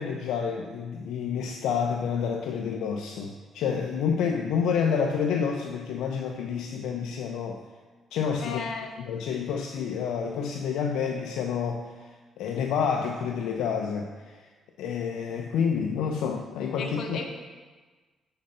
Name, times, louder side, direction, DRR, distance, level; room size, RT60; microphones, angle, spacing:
voice 1, 0.0-7.6 8.1-8.6 9.0-12.1 12.4-14.5 14.8-17.2, left 6 dB, 85° left, 2 dB, 0.4 m, -29 dB
voice 2, 8.4-8.9 16.8-17.2, left 5 dB, 65° left, 3 dB, 0.7 m, -34 dB
5.3 x 3.7 x 5.4 m, 1.3 s
cardioid pair, 105°, 0 cm